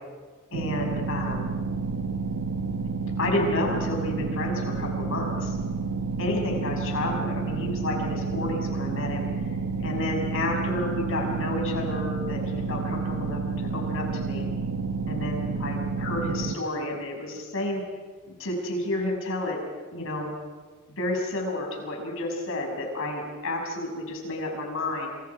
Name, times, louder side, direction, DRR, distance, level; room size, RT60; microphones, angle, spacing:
voice 1, 0.5-1.5 3.2-5.6 6.2-9.3 9.8-14.5 15.1-17.8 18.3-19.6 19.9-20.3 21.0-25.1, left 1 dB, 65° left, 1 dB, 6.6 m, -30 dB
sound 1, 0.5-16.5, right 4 dB, 85° right, 1.1 m, -30 dB
27.5 x 27.0 x 4.9 m, 1.4 s
head